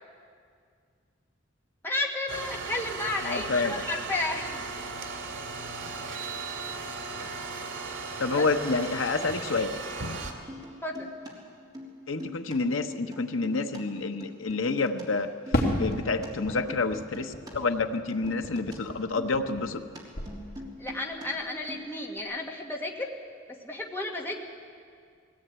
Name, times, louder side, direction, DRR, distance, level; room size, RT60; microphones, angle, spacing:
voice 1, 1.8-4.6 8.3-8.5 10.8-11.1 20.8-23.1 23.6-24.4, left 2 dB, 10° left, 0 dB, 1.7 m, -32 dB
sound 1, 2.3-10.3, right 4 dB, 75° right, 2.7 m, -37 dB
voice 2, 3.2-3.8 8.2-9.8 12.1-15.3 15.7-19.8, left 3 dB, 80° left, 6 dB, 1.2 m, -28 dB
sound 2, 10.5-11.3 11.6-12.6 12.8-15.0 15.3-17.5 17.8-21.3 21.5-22.2, left 1 dB, 20° right, 3.5 m, -43 dB
Fireworks, 15.5-19.9 20.1-20.9, equal, 50° left, 2.5 m, -33 dB
20.5 x 17.0 x 8.9 m, 2.2 s
head